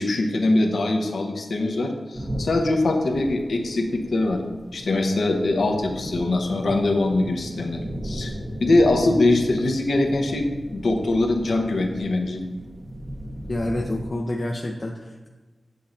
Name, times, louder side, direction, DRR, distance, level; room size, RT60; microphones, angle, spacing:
voice 1, 0.0-4.4 4.7-8.3 8.6-12.4, left 2 dB, 75° left, 3 dB, 0.8 m, -22 dB
sound 1, 2.1-14.1, equal, 20° right, 0.7 m, -36 dB
voice 2, 13.5-15.3, left 1 dB, 40° left, 1 dB, 0.5 m, -28 dB
7.7 x 7.1 x 2.6 m, 1.2 s
wide cardioid pair, 70°, 0 cm